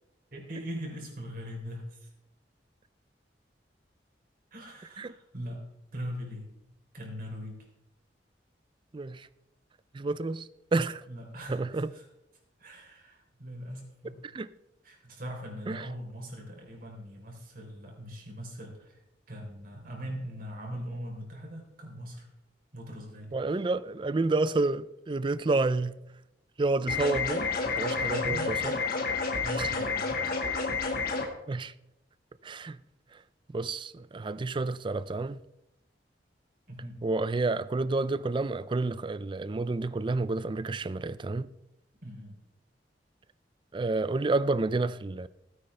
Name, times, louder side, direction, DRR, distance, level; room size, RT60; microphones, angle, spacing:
voice 1, 0.3-2.1 4.5-5.6 5.9-6.5 6.9-7.7 11.1-12.0 12.6-14.2 14.8-19.0 19.3-22.3 22.7-23.3 28.0-28.6 29.4-30.4 36.7-37.0 42.0-42.4, equal, 55° right, 3.4 m, -41 dB
voice 2, 8.9-9.3 9.9-11.0 11.5-11.9 14.3-14.5 15.7-15.9 23.3-26.0 26.6-27.5 27.7-28.7 29.6-29.7 31.5-31.7 32.4-32.8 33.5-35.4 37.0-41.5 43.7-45.3, right 3 dB, 30° right, 0.4 m, -29 dB
sound 1, 26.9-31.3, left 4 dB, 55° left, 1.6 m, -30 dB
16.0 x 9.6 x 3.3 m
head